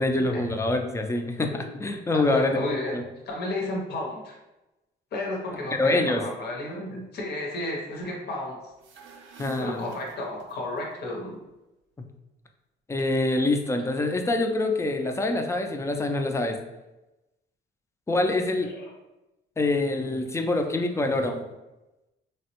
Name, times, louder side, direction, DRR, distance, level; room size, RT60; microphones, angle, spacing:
voice 1, 0.0-3.0 5.8-6.2 9.4-9.9 12.0-12.1 12.9-16.6 18.1-18.7 19.6-21.4, left 2 dB, 15° left, 4 dB, 0.4 m, -25 dB
voice 2, 2.1-3.0 3.3-4.4 5.1-8.6 9.4-11.4 18.7-18.9, left 1 dB, 55° left, -1 dB, 0.7 m, -33 dB
sound 1, 8.8-10.8, right 5 dB, 80° right, 0.5 m, -48 dB
3.3 x 2.1 x 2.8 m, 1.0 s
cardioid pair, 90°, 20 cm